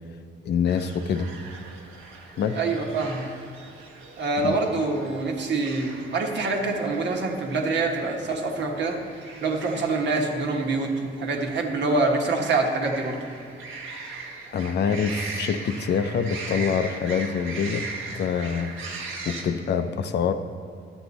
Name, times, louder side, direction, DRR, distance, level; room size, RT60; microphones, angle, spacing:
voice 1, 0.5-1.3 2.4-2.6 4.4-4.6 14.5-17.9 18.1-18.7 19.3-20.3, left 6 dB, 60° left, 9 dB, 0.6 m, -25 dB
sound 1, 0.7-19.4, right 3 dB, 85° right, 1.2 m, -40 dB
voice 2, 2.5-3.2 4.2-9.0 9.4-13.2, right 3 dB, 65° right, 2 dB, 1.3 m, -25 dB
11.5 x 8.1 x 4.0 m, 2.3 s
cardioid pair, 90°, 20 cm